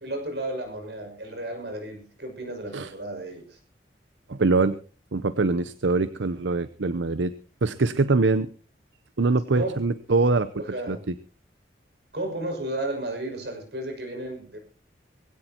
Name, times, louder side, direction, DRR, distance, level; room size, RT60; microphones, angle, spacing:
voice 1, 0.0-3.6 9.5-9.7 10.5-11.0 12.1-14.6, right 1 dB, 65° right, 5 dB, 6.2 m, -33 dB
voice 2, 4.3-4.8 5.1-7.3 7.6-8.5 9.2-10.5 10.9-11.1, right 3 dB, 90° right, 14 dB, 0.7 m, -23 dB
21.0 x 17.0 x 2.9 m, 0.35 s
head